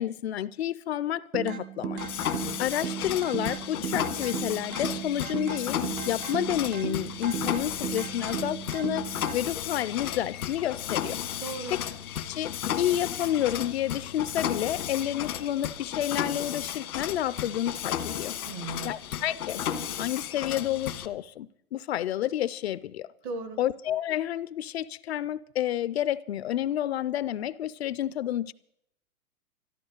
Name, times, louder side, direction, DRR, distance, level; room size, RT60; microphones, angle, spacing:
voice 1, 0.0-2.0 2.6-5.8 6.1-11.2 11.7-11.8 12.2-18.4 18.8-19.7 20.0-23.1 23.6-28.5, left 12 dB, 50° left, 17 dB, 0.5 m, -30 dB
sound 1, 1.3-9.3, right 8 dB, 75° right, 1.7 m, -36 dB
Mechanisms, 2.0-21.1, left 9 dB, 80° left, 1.7 m, -34 dB
voice 2, 11.4-11.8 18.5-18.9 23.2-23.6, right 3 dB, 15° right, 10 dB, 0.5 m, -36 dB
13.5 x 12.0 x 6.5 m, 0.73 s
hypercardioid pair, 160°, 43 cm